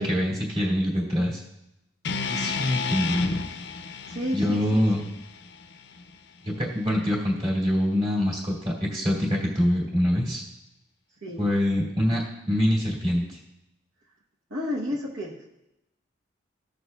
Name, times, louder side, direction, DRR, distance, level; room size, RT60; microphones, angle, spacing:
voice 1, 0.0-1.4 2.3-3.4 4.3-5.0 6.4-10.4 11.4-13.4, equal, 35° right, -5 dB, 1.8 m, -25 dB
sound 1, 2.0-6.2, left 4 dB, 60° left, 0.5 m, -32 dB
voice 2, 4.1-5.0 11.2-11.4 14.5-15.4, left 1 dB, 75° right, -4 dB, 0.9 m, -32 dB
15.5 x 6.5 x 2.3 m, 0.89 s
head